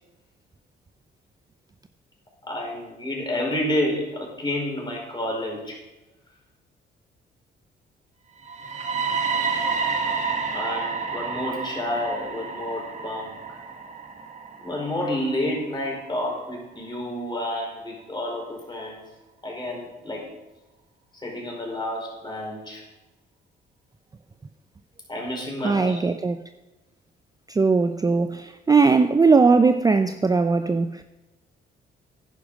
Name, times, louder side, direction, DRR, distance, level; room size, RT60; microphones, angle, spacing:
voice 1, 2.4-5.8 10.5-13.4 14.6-19.0 19.4-20.3 21.2-22.8 25.1-26.0, left 1 dB, 20° left, 5.1 m, -29 dB
sound 1, 8.4-16.3, right 5 dB, 35° right, 1.6 m, -30 dB
voice 2, 25.6-26.4 27.5-31.0, right 4 dB, 20° right, 0.5 m, -19 dB
10.5 x 10.0 x 5.1 m
cardioid pair, 90°, 20 cm